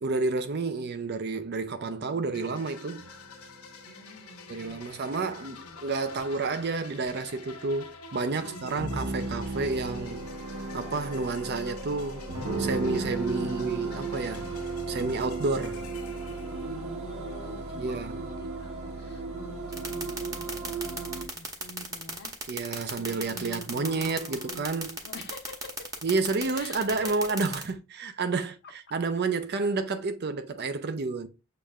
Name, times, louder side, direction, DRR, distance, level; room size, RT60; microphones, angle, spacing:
voice 1, 0.0-3.1 4.5-10.3 10.7-12.2 12.6-14.5 14.9-15.8 17.8-18.3 22.5-25.0 26.0-31.3, right 3 dB, 45° right, 0.5 m, -30 dB
voice 2, 1.7-2.6 3.8-4.8 5.3-5.8 8.3-8.9 13.2-13.7 16.7-17.8 18.1-22.3 23.0-24.7 25.0-25.7 26.5-27.1, left 1 dB, 50° left, 0.9 m, -46 dB
sound 1, 2.3-17.1, left 6 dB, 80° left, 1.1 m, -49 dB
sound 2, 3.0-21.3, right 3 dB, 75° right, 1.2 m, -36 dB
sound 3, 19.7-27.6, right 3 dB, 15° right, 0.9 m, -34 dB
6.7 x 3.2 x 2.3 m
head